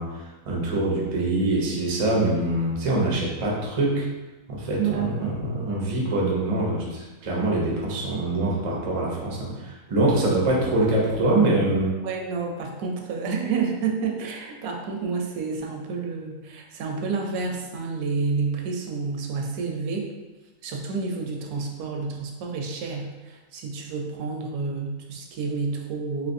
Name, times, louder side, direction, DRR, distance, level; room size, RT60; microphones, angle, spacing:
voice 1, 0.0-4.1 4.5-11.9, right 2 dB, 60° right, -4 dB, 0.3 m, -24 dB
voice 2, 4.8-5.3 10.2-10.3 12.0-20.1 20.6-26.3, right 5 dB, 80° right, 1 dB, 1.1 m, -29 dB
3.2 x 2.9 x 2.5 m, 1.2 s
omnidirectional pair, 1.6 m